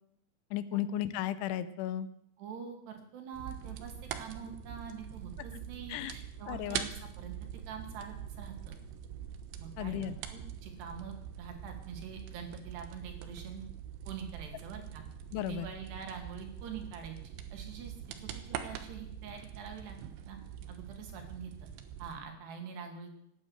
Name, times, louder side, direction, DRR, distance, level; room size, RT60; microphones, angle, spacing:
voice 1, 0.5-2.1 5.9-6.1 6.5-6.8 9.8-10.2 15.3-15.7, left 12 dB, 85° left, 14 dB, 3.3 m, -34 dB
voice 2, 2.4-7.3 7.7-8.8 9.6-10.0 10.3-13.6 14.1-15.0 15.4-20.0 20.3-20.4 20.7-21.7 22.0-23.1, right 6 dB, 65° right, 4 dB, 4.4 m, -45 dB
sound 1, 3.3-22.2, right 9 dB, 85° right, 3.6 m, -44 dB
18.0 x 9.6 x 8.1 m, 0.74 s
omnidirectional pair, 5.4 m